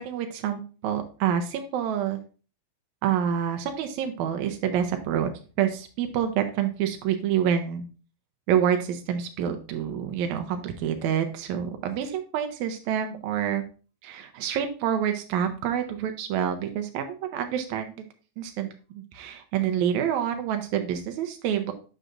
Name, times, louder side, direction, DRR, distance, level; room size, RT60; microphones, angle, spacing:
voice 1, 0.0-2.2 3.0-5.3 5.6-7.8 8.5-13.6 14.0-18.1 18.4-18.7 18.9-21.7, right 9 dB, 80° right, 6 dB, 2.1 m, -27 dB
7.9 x 6.5 x 2.4 m, 0.36 s
omnidirectional pair, 3.4 m